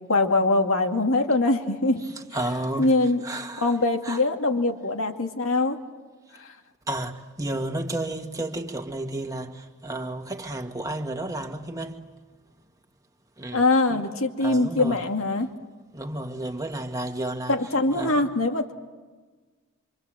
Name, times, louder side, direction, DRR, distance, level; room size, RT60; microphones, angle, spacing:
voice 1, 0.1-2.1 2.8-3.2 3.6-5.8 6.4-6.5 13.5-15.5 17.5-18.7, left 2 dB, 75° left, 2.3 m, -23 dB
voice 2, 2.3-2.9 3.2-3.8 4.0-4.2 6.9-12.1 13.4-13.6 13.9-14.0 14.4-15.0 15.9-17.5 17.9-18.3, right 1 dB, 15° right, 1.8 m, -32 dB
26.5 x 26.0 x 7.7 m
head